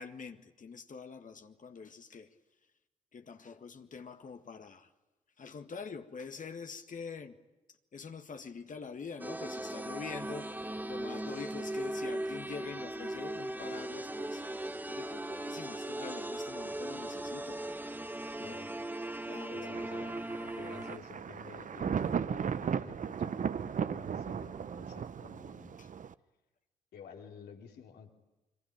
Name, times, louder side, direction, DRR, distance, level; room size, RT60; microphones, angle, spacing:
voice 1, 0.0-2.3 3.1-4.9 5.4-7.4 7.9-10.5 10.9-14.4 14.9-17.6 18.4-18.6 19.3-19.7 25.8-25.9, left 5 dB, 50° left, 1.8 m, -45 dB
sound 1, 9.2-21.0, right 1 dB, 10° right, 1.4 m, -38 dB
voice 2, 19.5-25.8 26.9-28.1, left 6 dB, 70° left, 3.1 m, -51 dB
Thunder, 19.7-26.1, right 7 dB, 50° right, 0.9 m, -36 dB
26.5 x 23.5 x 8.8 m
hypercardioid pair, 40°, 17 cm